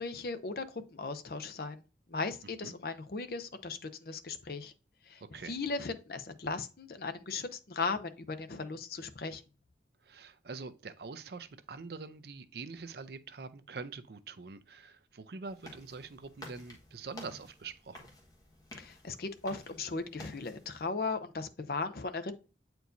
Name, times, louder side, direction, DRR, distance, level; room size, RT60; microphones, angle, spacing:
voice 1, 0.0-1.8 2.1-4.7 5.1-9.4 18.8-22.3, left 4 dB, 55° left, 0.6 m, -37 dB
voice 2, 10.0-18.1, right 4 dB, 65° right, 0.5 m, -45 dB
sound 1, 15.4-20.9, left 1 dB, 20° left, 1.3 m, -52 dB
8.2 x 4.5 x 2.6 m
head